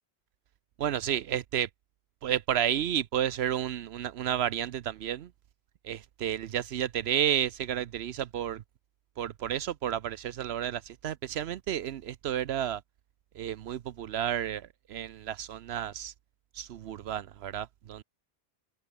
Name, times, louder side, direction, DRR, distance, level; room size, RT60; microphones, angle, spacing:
voice 1, 0.8-1.7 2.2-5.3 5.8-8.6 9.2-12.8 13.3-16.1 16.5-18.0, right 10 dB, 80° right, 0.9 m, -31 dB
omnidirectional pair, 1.1 m